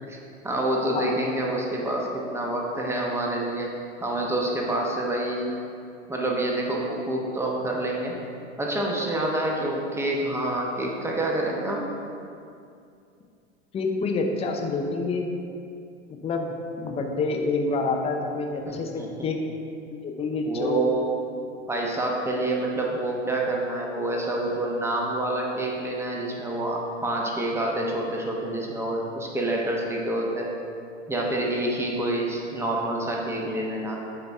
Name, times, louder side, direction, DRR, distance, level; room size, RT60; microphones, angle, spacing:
voice 1, 0.4-3.7 4.0-5.5 6.1-8.2 8.6-11.9 18.7-19.1 20.4-21.1 21.7-30.5 31.1-34.0, right 1 dB, 5° right, -2 dB, 1.0 m, -27 dB
voice 2, 13.7-15.3 16.2-19.4 20.0-20.8, left 3 dB, 15° left, 2 dB, 0.6 m, -27 dB
8.9 x 4.0 x 4.7 m, 2.5 s
hypercardioid pair, 110°, 37 cm